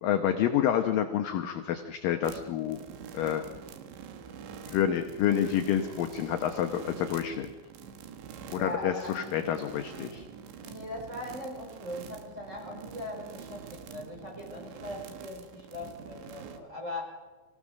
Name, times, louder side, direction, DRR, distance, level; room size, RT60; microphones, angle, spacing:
voice 1, 0.0-2.8 3.1-3.4 4.7-7.5 8.5-10.3, left 10 dB, 75° left, 5 dB, 2.1 m, -28 dB
sound 1, 2.2-16.6, right 7 dB, 75° right, 3.7 m, -46 dB
voice 2, 8.5-9.3 10.6-17.2, left 1 dB, 15° right, -1 dB, 5.3 m, -40 dB
26.5 x 16.0 x 6.4 m, 1.3 s
omnidirectional pair, 5.3 m